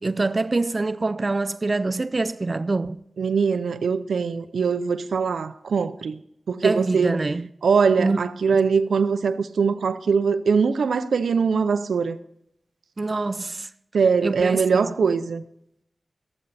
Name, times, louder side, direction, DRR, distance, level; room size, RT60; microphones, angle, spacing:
voice 1, 0.0-3.0 6.6-7.5 8.0-8.2 13.0-13.7 14.2-14.6 14.9-15.0, right 3 dB, 40° right, 0.4 m, -25 dB
voice 2, 3.2-6.2 6.5-7.2 7.6-12.2 13.9-15.4, right 5 dB, 90° right, 0.6 m, -22 dB
14.0 x 11.0 x 4.2 m
cardioid pair, 60°, 0 cm